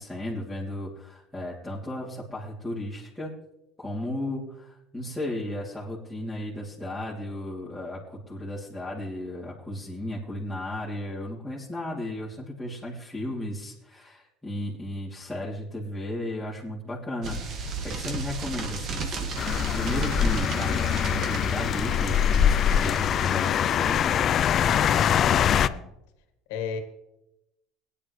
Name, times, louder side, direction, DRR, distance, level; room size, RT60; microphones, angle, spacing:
voice 1, 0.0-3.3 3.8-24.0, left 1 dB, ahead, -9 dB, 3.1 m, -35 dB
sound 1, 17.2-23.5, right 3 dB, 50° right, 2.1 m, -34 dB
sound 2, 19.4-25.7, left 9 dB, 45° left, 0.5 m, -23 dB
voice 2, 24.7-25.9 26.5-26.8, left 7 dB, 85° left, 7 dB, 1.9 m, -35 dB
17.5 x 10.0 x 3.3 m, 0.84 s
supercardioid pair, 100°, 0 cm